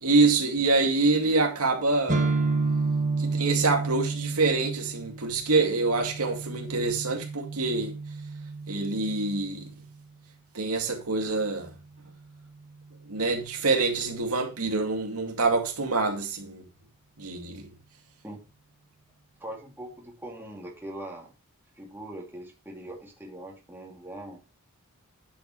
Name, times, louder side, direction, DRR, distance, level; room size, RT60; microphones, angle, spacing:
voice 1, 0.0-2.3 3.2-8.0 8.7-9.7 10.5-11.7 13.1-16.6 17.2-17.7, right 3 dB, 85° right, 2.2 m, -26 dB
sound 1, 2.1-9.9, right 3 dB, 35° right, 1.4 m, -31 dB
voice 2, 19.4-21.3 21.8-24.4, right 1 dB, 10° right, 2.6 m, -41 dB
10.5 x 7.9 x 3.1 m
head